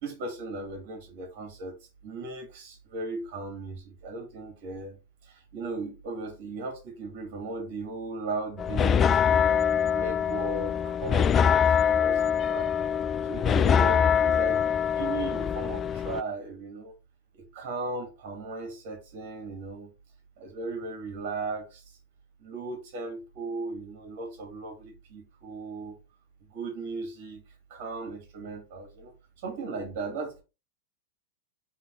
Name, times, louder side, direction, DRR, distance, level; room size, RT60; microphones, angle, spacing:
voice 1, 0.0-1.8 2.0-5.0 5.2-12.7 13.2-16.9 17.3-19.9 20.4-21.8 22.4-26.0 26.5-27.4 27.7-29.1 29.4-30.4, right 3 dB, 45° right, 2.3 m, -37 dB
sound 1, 8.6-16.2, left 8 dB, 25° left, 0.3 m, -24 dB
6.0 x 3.6 x 4.6 m
figure-of-eight pair, 90°, 0 cm